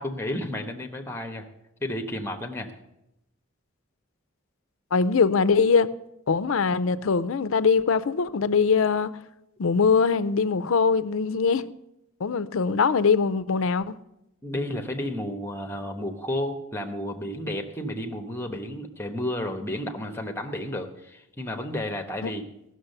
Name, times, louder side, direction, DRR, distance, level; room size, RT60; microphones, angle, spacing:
voice 1, 0.0-1.5 1.8-2.7 14.4-22.4, left 1 dB, 10° left, 1.0 m, -32 dB
voice 2, 4.9-5.9 6.3-9.1 9.6-11.7 12.2-14.0 22.2-22.3, left 5 dB, 70° left, 0.5 m, -22 dB
15.0 x 6.5 x 6.6 m
head